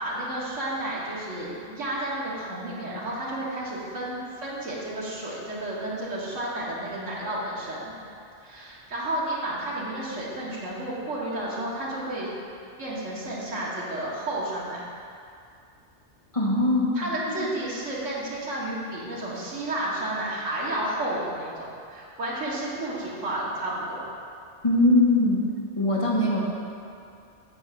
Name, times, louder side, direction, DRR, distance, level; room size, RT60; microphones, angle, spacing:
voice 1, 0.0-7.9 8.4-12.3 12.8-14.8 17.0-24.1, right 1 dB, 80° right, -6 dB, 2.0 m, -31 dB
voice 2, 16.3-17.0 17.4-17.5 24.6-25.4 25.8-26.4, left 2 dB, 25° left, -5 dB, 1.3 m, -21 dB
8.3 x 4.6 x 7.3 m, 2.4 s
omnidirectional pair, 1.3 m